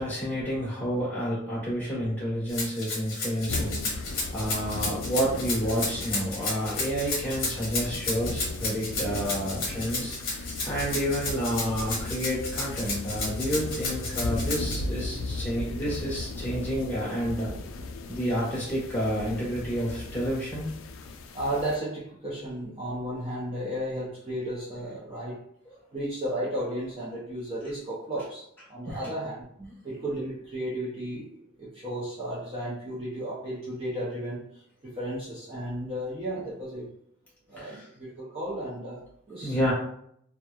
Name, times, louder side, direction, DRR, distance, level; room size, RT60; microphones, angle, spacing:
voice 1, 0.0-17.5 18.1-20.7 25.7-25.8 28.8-29.0 29.6-29.7 37.5-37.9 39.4-39.7, equal, 10° left, -8 dB, 1.2 m, -30 dB
Rattle (instrument), 2.5-14.7, left 3 dB, 45° left, 0.8 m, -32 dB
sound 1, 3.5-21.8, left 2 dB, 75° left, 0.3 m, -37 dB
voice 2, 21.3-25.4 25.9-28.4 28.7-29.4 29.8-34.4 34.8-36.9 37.5-39.7, right 1 dB, 30° right, -8 dB, 0.5 m, -34 dB
2.9 x 2.2 x 2.3 m, 0.69 s
head